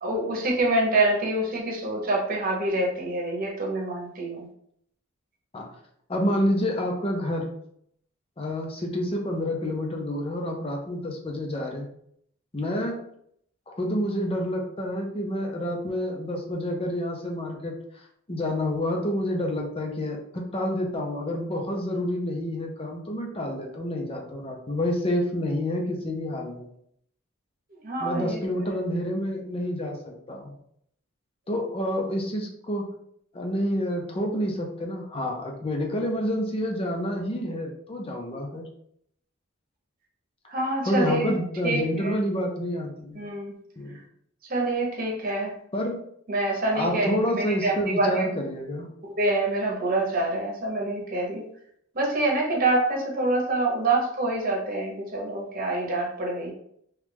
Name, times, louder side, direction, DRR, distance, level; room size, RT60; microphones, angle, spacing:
voice 1, 0.0-4.5 27.8-28.4 40.5-41.4 41.6-42.1 43.1-43.5 44.5-45.5 46.3-48.3 49.0-51.4 51.9-56.5, right 2 dB, 45° right, -2 dB, 0.9 m, -26 dB
voice 2, 6.1-7.5 8.4-11.9 12.5-13.0 13.7-17.8 18.3-26.7 28.0-30.5 31.5-32.9 33.3-38.6 40.8-43.2 43.8-44.0 45.7-46.0 46.7-48.9, left 1 dB, 30° left, 1 dB, 0.6 m, -28 dB
3.0 x 2.4 x 3.4 m, 0.69 s
head